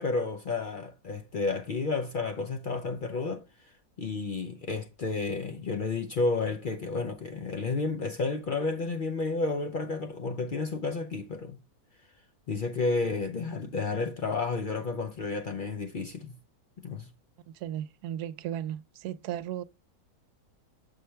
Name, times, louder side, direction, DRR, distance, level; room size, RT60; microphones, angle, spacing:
voice 1, 0.0-3.4 4.0-11.6 12.5-16.3 16.8-17.1, left 3 dB, 65° left, 0.5 m, -31 dB
voice 2, 17.5-19.6, right 11 dB, 85° right, 1.1 m, -35 dB
6.6 x 5.6 x 3.2 m
omnidirectional pair, 1.6 m